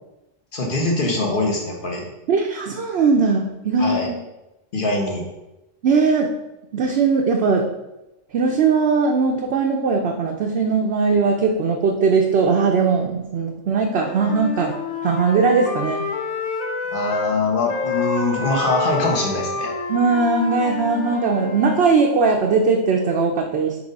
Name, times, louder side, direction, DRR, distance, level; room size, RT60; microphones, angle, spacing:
voice 1, 0.5-2.1 3.8-4.1 4.7-5.2 16.9-19.7, left 2 dB, 45° left, 0 dB, 1.4 m, -22 dB
voice 2, 2.3-4.1 5.8-6.3 6.7-7.6 8.3-14.7 15.0-16.0 19.9-23.8, right 4 dB, 60° right, 1 dB, 0.8 m, -19 dB
Wind instrument woodwind instrument, 13.8-17.3 17.7-21.9, left 4 dB, 65° left, 1.0 m, -28 dB
4.8 x 4.0 x 5.3 m, 0.95 s
omnidirectional pair, 1.3 m